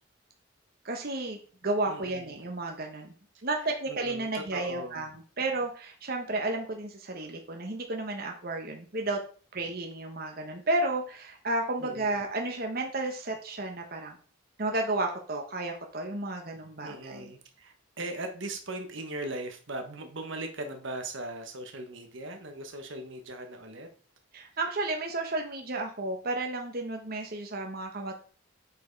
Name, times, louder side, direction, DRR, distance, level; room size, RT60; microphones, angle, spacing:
voice 1, 0.8-3.1 3.4-9.2 9.5-14.2 14.6-17.3 24.3-28.1, right 2 dB, 45° right, 2 dB, 1.2 m, -32 dB
voice 2, 1.9-2.4 3.9-5.0 11.8-12.1 16.8-23.9, right 1 dB, 65° right, 5 dB, 1.3 m, -39 dB
8.2 x 4.6 x 4.7 m, 0.41 s
head